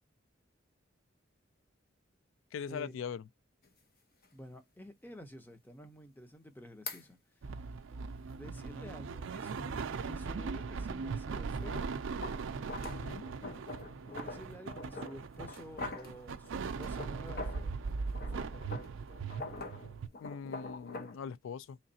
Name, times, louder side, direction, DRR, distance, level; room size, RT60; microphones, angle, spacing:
voice 1, 2.5-3.3 12.9-13.2 20.2-21.8, left 6 dB, 75° left, 0.3 m, -41 dB
sound 1, 3.6-3.7 4.2-4.3 6.9-7.0 11.5-17.7 18.1-21.2, left 3 dB, 50° left, 1.0 m, -45 dB
voice 2, 4.3-7.2 8.3-11.9 14.1-17.7 18.2-18.6, equal, 10° left, 0.8 m, -50 dB
sound 2, 7.4-20.1, right 5 dB, 70° right, 0.4 m, -39 dB
3.8 x 3.2 x 2.7 m
head